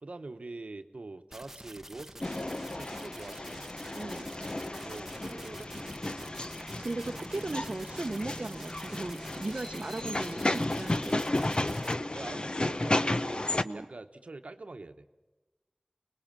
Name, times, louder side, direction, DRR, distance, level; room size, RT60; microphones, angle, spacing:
voice 1, 0.0-3.8 4.8-6.4 11.2-11.3 12.1-15.1, right 2 dB, 85° right, 8 dB, 1.0 m, -45 dB
sound 1, 1.3-12.0, right 1 dB, 15° right, 1.0 m, -48 dB
sound 2, 2.2-13.6, left 1 dB, 45° left, 0.8 m, -33 dB
voice 2, 3.9-4.2 6.6-11.2 13.6-13.9, right 2 dB, 60° right, 5 dB, 0.7 m, -37 dB
sound 3, 4.8-11.1, equal, 20° left, 2.6 m, -50 dB
25.5 x 21.0 x 7.5 m, 1.1 s
wide cardioid pair, 45°, 2 cm